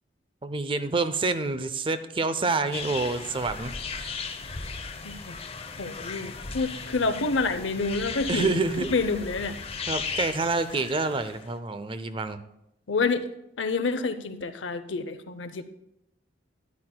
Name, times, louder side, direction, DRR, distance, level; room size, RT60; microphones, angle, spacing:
voice 1, 0.4-4.3 8.3-8.9 9.9-12.4, right 3 dB, 30° right, 11 dB, 0.5 m, -28 dB
sound 1, 2.7-11.5, left 5 dB, 30° left, 0.7 m, -36 dB
voice 2, 5.0-5.4 5.8-9.6 12.9-13.3 13.6-15.6, left 3 dB, 80° left, 10 dB, 0.7 m, -28 dB
13.0 x 10.5 x 2.3 m, 0.84 s
head